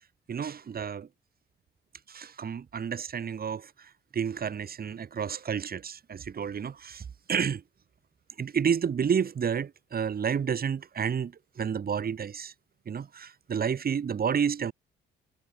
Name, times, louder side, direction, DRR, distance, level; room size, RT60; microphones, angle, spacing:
voice 1, 0.3-1.1 2.1-7.6 8.4-12.5 12.9-14.7, right 7 dB, 50° right, 7.1 m, -30 dB
cardioid pair, 90°, 20 cm